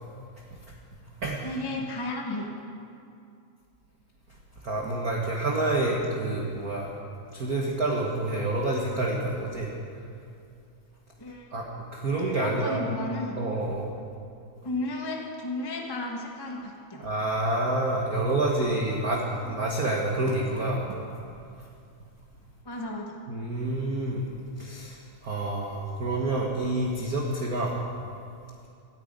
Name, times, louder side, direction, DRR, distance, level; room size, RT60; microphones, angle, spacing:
voice 1, 1.4-2.5 11.2-11.5 12.3-13.4 14.6-17.0 22.6-23.1, left 2 dB, 25° left, 0 dB, 0.5 m, -33 dB
voice 2, 4.6-6.9 7.3-9.7 11.5-11.7 11.9-12.8 13.4-13.9 17.0-21.0 23.3-27.8, right 2 dB, 45° right, -1 dB, 1.2 m, -28 dB
14.5 x 9.3 x 9.0 m, 2.5 s
omnidirectional pair, 3.4 m